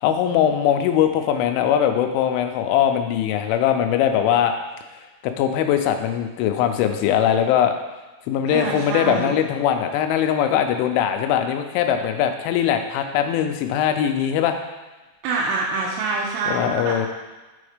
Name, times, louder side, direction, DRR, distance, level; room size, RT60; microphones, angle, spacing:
voice 1, 0.0-4.5 5.2-7.7 8.3-14.6 16.5-17.1, left 9 dB, 85° left, 6 dB, 2.9 m, -21 dB
voice 2, 8.5-9.4 15.2-17.1, right 4 dB, 80° right, -4 dB, 3.2 m, -26 dB
7.8 x 4.3 x 5.0 m, 1.2 s
omnidirectional pair, 5.5 m